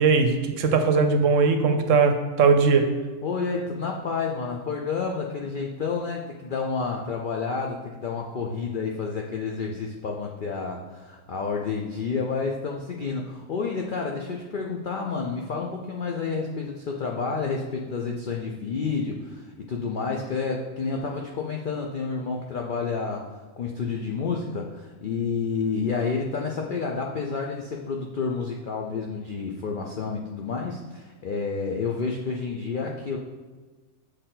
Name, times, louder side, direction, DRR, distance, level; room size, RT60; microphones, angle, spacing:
voice 1, 0.0-2.9, right 5 dB, 70° right, 7 dB, 0.9 m, -20 dB
voice 2, 3.2-23.3 23.6-33.2, left 5 dB, 70° left, 0 dB, 0.4 m, -30 dB
6.6 x 4.3 x 3.8 m, 1.4 s
omnidirectional pair, 1.5 m